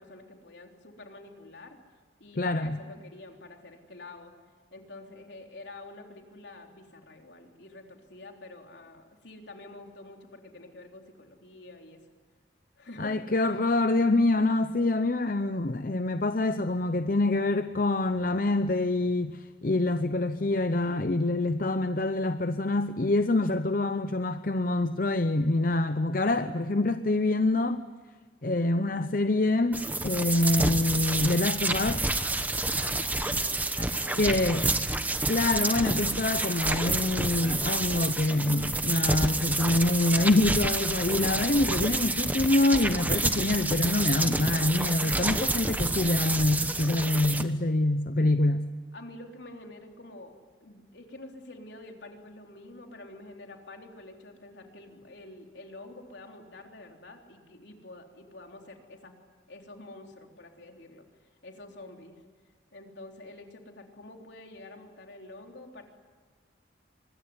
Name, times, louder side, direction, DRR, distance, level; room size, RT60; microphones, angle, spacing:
voice 1, 0.0-1.8 2.2-4.3 4.7-12.0 12.8-13.1 32.6-34.6 48.9-50.3 50.6-59.1 59.5-61.0 61.4-62.2 62.7-65.8, left 2 dB, 70° left, 3.6 m, -47 dB
voice 2, 2.4-2.8 13.0-27.9 28.4-32.0 34.2-34.6 35.3-48.7, left 2 dB, 45° left, 0.7 m, -26 dB
sound 1, 29.7-47.4, right 2 dB, 10° right, 1.0 m, -29 dB
24.5 x 21.5 x 9.7 m
head